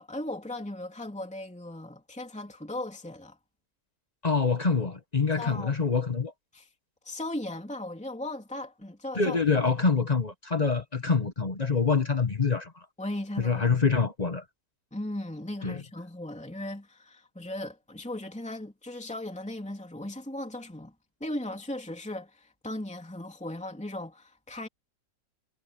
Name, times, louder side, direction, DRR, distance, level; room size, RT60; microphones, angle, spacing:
voice 1, 0.0-3.4 5.4-5.7 6.5-6.7 7.0-9.6 13.0-13.8 14.9-20.9 21.2-24.7, left 1 dB, 5° left, 3.0 m, -37 dB
voice 2, 4.2-6.3 9.1-12.7 13.4-14.4 15.6-15.8, left 5 dB, 30° left, 1.0 m, -25 dB
omnidirectional pair, 1.9 m